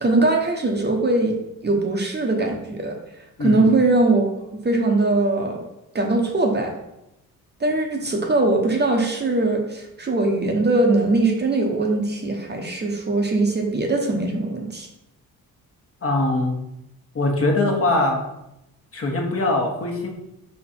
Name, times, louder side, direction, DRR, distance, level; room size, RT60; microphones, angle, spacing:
voice 1, 0.0-1.4 1.6-3.0 3.4-4.3 4.6-5.6 5.9-6.7 7.6-14.9, right 2 dB, 30° right, 2 dB, 0.8 m, -21 dB
voice 2, 3.4-3.7 16.0-16.5 17.1-18.2 18.9-20.1, left 2 dB, 40° left, 0 dB, 1.3 m, -22 dB
5.0 x 4.3 x 4.3 m, 0.87 s
cardioid pair, 115°, 36 cm